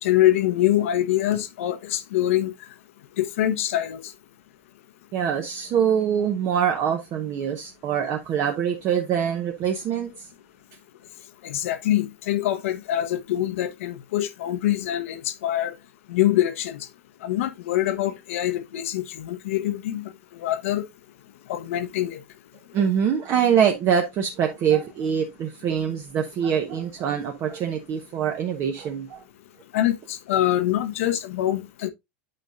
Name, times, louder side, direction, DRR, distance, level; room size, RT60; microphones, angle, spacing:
voice 1, 0.0-2.5 3.2-4.0 11.4-15.7 16.1-16.9 17.2-20.9 21.5-22.2 29.7-31.9, left 13 dB, 75° left, 1.0 m, -24 dB
voice 2, 5.1-10.3 22.7-29.2, right 8 dB, 35° right, 1.0 m, -24 dB
8.9 x 5.1 x 2.5 m
supercardioid pair, 135°, 7 cm